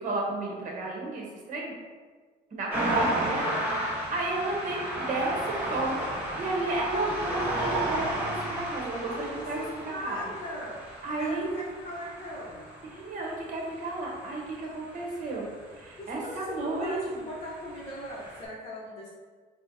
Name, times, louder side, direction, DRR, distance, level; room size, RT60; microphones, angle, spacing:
voice 1, 0.0-1.7 2.5-6.1 6.4-10.3 11.0-11.6 12.9-15.5 15.7-16.9, right 2 dB, 50° right, -2 dB, 0.9 m, -33 dB
sound 1, 2.7-15.9 16.9-18.4, right 1 dB, 10° right, 0.9 m, -33 dB
voice 2, 9.1-10.8 11.2-12.7 16.0-19.1, equal, 35° left, -6 dB, 0.7 m, -39 dB
4.3 x 2.1 x 2.6 m, 1.5 s
cardioid pair, 110°, 17 cm